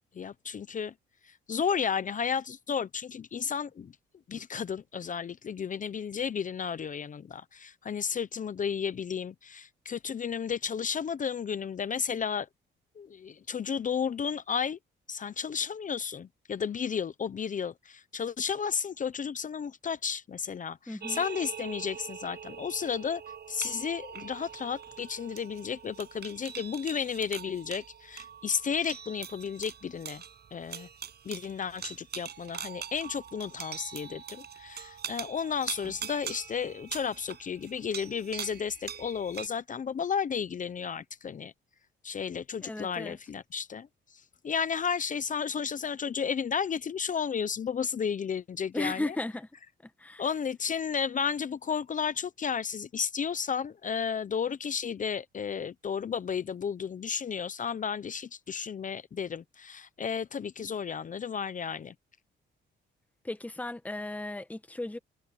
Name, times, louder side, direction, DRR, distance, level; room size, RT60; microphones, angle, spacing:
voice 1, 0.1-0.9 1.2-3.9 4.3-12.5 13.0-14.8 15.1-23.2 23.5-30.2 30.5-30.9 31.2-41.5 42.0-43.9 44.4-49.2 50.2-61.9, left 7 dB, 40° left, 0.8 m, -33 dB
voice 2, 20.9-21.2 42.6-43.2 48.7-49.5 50.0-50.2 63.2-65.0, left 2 dB, 5° left, 1.2 m, -35 dB
sound 1, 21.0-39.5, right 8 dB, 55° right, 6.6 m, -43 dB
cardioid pair, 90°, 20 cm